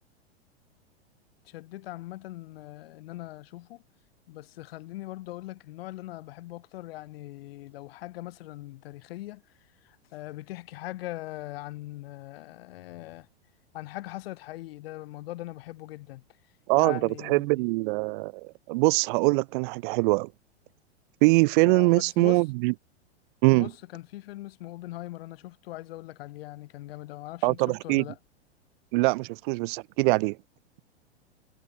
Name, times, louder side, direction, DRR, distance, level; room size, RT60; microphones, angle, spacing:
voice 1, 1.4-3.8 4.3-9.4 9.8-13.3 13.7-16.2 16.8-17.6 21.7-22.4 23.5-28.2, left 17 dB, 60° left, 6.1 m, -41 dB
voice 2, 16.7-20.3 21.2-22.7 23.4-23.7 27.4-28.0 28.9-30.4, right 26 dB, 50° right, 1.0 m, -23 dB
hypercardioid pair, 105°, 33 cm